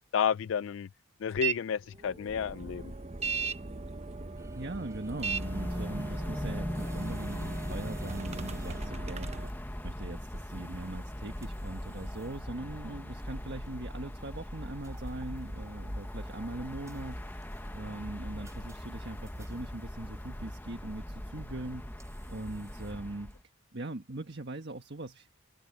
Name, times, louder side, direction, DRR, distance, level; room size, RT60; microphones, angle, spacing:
voice 1, 0.1-0.9 1.2-2.9, left 7 dB, 60° left, 0.3 m, -31 dB
sound 1, 1.4-1.6 1.9-9.5, right 5 dB, 30° right, 0.9 m, -38 dB
sound 2, 4.4-23.4, right 2 dB, 15° right, 5.6 m, -59 dB
voice 2, 4.5-21.9 22.3-23.3 23.7-25.3, right 2 dB, 50° right, 1.6 m, -41 dB
sound 3, 5.1-23.4, equal, 10° left, 1.0 m, -39 dB
open air
head